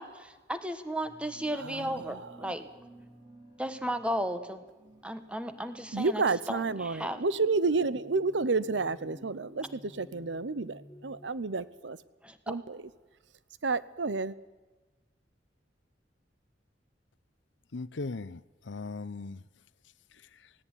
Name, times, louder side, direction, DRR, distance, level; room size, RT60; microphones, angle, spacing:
voice 1, 0.0-2.7 3.6-4.6 5.0-6.2 6.5-7.2 12.2-12.5, equal, 5° right, 10 dB, 1.4 m, -34 dB
sound 1, 1.0-11.3, right 1 dB, 20° right, 2.9 m, -54 dB
voice 2, 1.5-2.5 5.9-12.0 12.5-12.8 13.6-14.4, right 3 dB, 80° right, 17 dB, 0.8 m, -30 dB
voice 3, 17.7-19.4 20.1-20.5, left 3 dB, 90° left, 17 dB, 0.7 m, -39 dB
18.0 x 17.0 x 9.9 m, 1.2 s
head